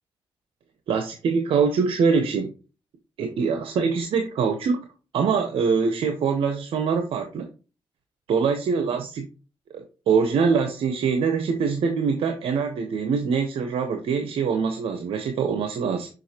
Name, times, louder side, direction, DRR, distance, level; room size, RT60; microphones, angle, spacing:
voice 1, 0.9-2.5 3.2-4.9 5.1-7.5 8.3-9.3 9.7-16.1, right 5 dB, 90° right, 5 dB, 0.9 m, -24 dB
6.2 x 5.4 x 2.9 m, 0.33 s
cardioid pair, 65°, 9 cm